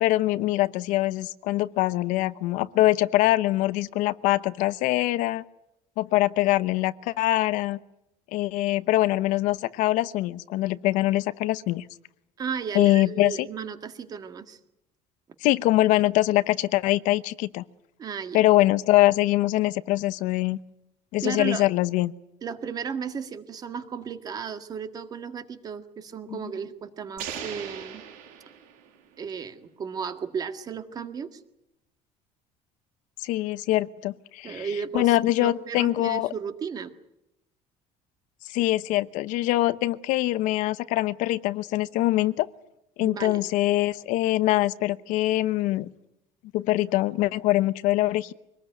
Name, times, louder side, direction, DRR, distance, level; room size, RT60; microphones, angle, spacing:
voice 1, 0.0-5.4 6.0-7.8 8.3-11.8 12.7-13.5 15.4-17.6 18.3-20.6 21.1-22.1 26.3-26.4 33.2-34.7 34.9-36.3 38.5-42.5 43.0-45.9 46.5-48.3, left 16 dB, 70° left, 15 dB, 0.9 m, -23 dB
voice 2, 12.4-14.6 18.0-18.5 21.2-21.7 22.4-28.0 29.2-31.4 34.4-36.9 43.0-43.4, right 6 dB, 30° right, 9 dB, 1.8 m, -34 dB
sound 1, 27.2-29.1, right 8 dB, 85° right, 6.4 m, -39 dB
25.0 x 19.5 x 9.2 m, 0.86 s
cardioid pair, 170°, 14 cm